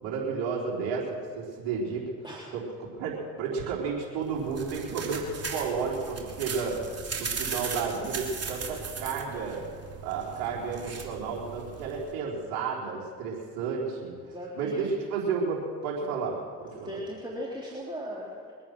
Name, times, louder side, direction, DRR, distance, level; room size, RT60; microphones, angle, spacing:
voice 1, 0.0-2.1 2.5-6.8 7.2-9.6 10.0-14.1 14.5-17.0, right 5 dB, 85° right, -5 dB, 4.2 m, -32 dB
sound 1, 4.2-12.1, right 5 dB, 40° right, 3.1 m, -38 dB
voice 2, 14.3-14.9 16.0-16.2 16.8-18.5, equal, 10° right, -5 dB, 3.5 m, -38 dB
23.5 x 8.8 x 6.3 m, 2.1 s
supercardioid pair, 70°, 36 cm